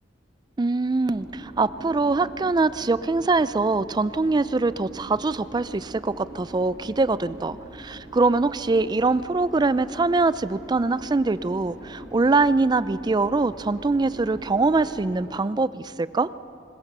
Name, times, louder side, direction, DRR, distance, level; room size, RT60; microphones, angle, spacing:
voice 1, 0.6-16.3, right 3 dB, 25° right, 16 dB, 0.4 m, -23 dB
sound 1, 1.0-15.2, right 1 dB, 15° left, 4.8 m, -43 dB
21.0 x 20.0 x 6.7 m, 2.6 s
head